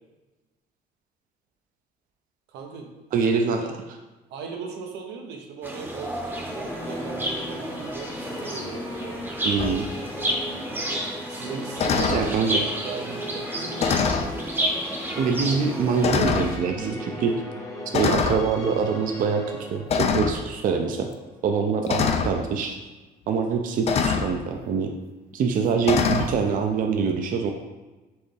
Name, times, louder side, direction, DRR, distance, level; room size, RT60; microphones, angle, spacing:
voice 1, 2.5-3.7 4.3-9.2 11.3-12.4 12.8-14.1, right 5 dB, 85° right, 2 dB, 0.8 m, -38 dB
voice 2, 3.1-3.6 9.4-9.9 12.1-12.6 15.1-17.3 17.9-21.1 21.4-22.8 23.3-24.9 25.3-27.5, right 5 dB, 55° right, 3 dB, 0.5 m, -24 dB
sound 1, 5.6-16.6, right 1 dB, 10° right, 0.7 m, -31 dB
sound 2, 6.1-22.2, left 1 dB, 20° left, 0.8 m, -38 dB
sound 3, 9.6-9.8 11.8-12.3 13.8-14.3 15.2-15.3 16.0-16.5 17.9-18.4 19.9-20.4 21.9-22.3 23.9-24.3 25.8-26.3, left 6 dB, 40° left, 0.4 m, -23 dB
4.4 x 3.4 x 3.3 m, 1.2 s
cardioid pair, 110°, 17 cm